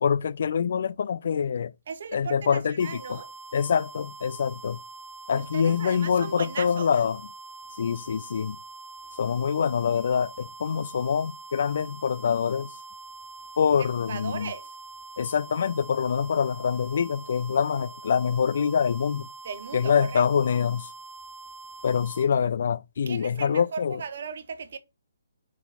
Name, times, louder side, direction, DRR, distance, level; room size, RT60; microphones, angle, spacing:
voice 1, 0.0-1.7 2.1-3.2 3.5-4.8 5.3-7.2 7.8-8.6 9.2-12.7 13.6-14.5 15.2-19.3 19.7-20.9 21.8-24.0, left 7 dB, 50° left, 0.4 m, -25 dB
voice 2, 1.9-3.3 5.3-6.9 14.1-14.7 19.4-20.2 23.1-24.8, right 6 dB, 50° right, 1.0 m, -37 dB
sound 1, 2.8-22.3, right 3 dB, 15° right, 1.0 m, -44 dB
5.8 x 5.3 x 4.2 m
figure-of-eight pair, 135°, 0 cm